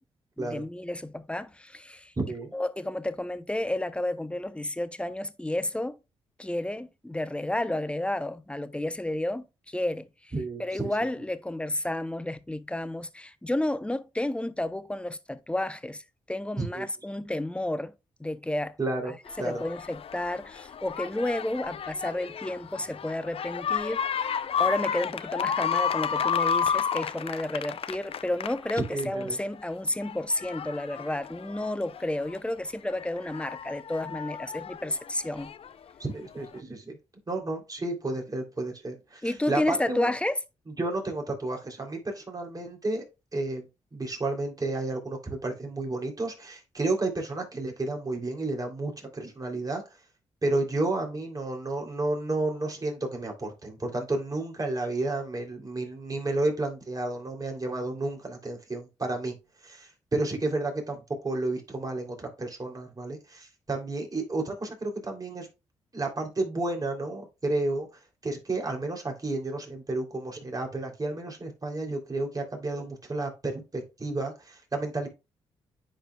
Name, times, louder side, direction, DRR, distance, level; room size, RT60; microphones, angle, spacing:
voice 1, 0.4-2.1 2.5-6.0 6.4-10.3 10.6-16.0 16.3-17.9 18.2-18.7 19.4-35.5 39.2-40.4, left 1 dB, 10° left, 0.7 m, -31 dB
voice 2, 2.2-2.5 10.3-10.9 16.6-16.9 18.8-19.6 28.9-29.4 36.0-37.0 37.3-40.1 40.8-43.0 43.3-43.7 43.9-49.8 50.4-59.3 59.6-65.5 65.9-67.9 68.2-75.1, right 2 dB, 30° right, 3.1 m, -31 dB
sound 1, 19.3-29.4 29.9-32.4 32.9-35.7 36.6-36.7, left 7 dB, 55° left, 0.5 m, -32 dB
10.0 x 4.4 x 2.3 m
supercardioid pair, 55°, 12 cm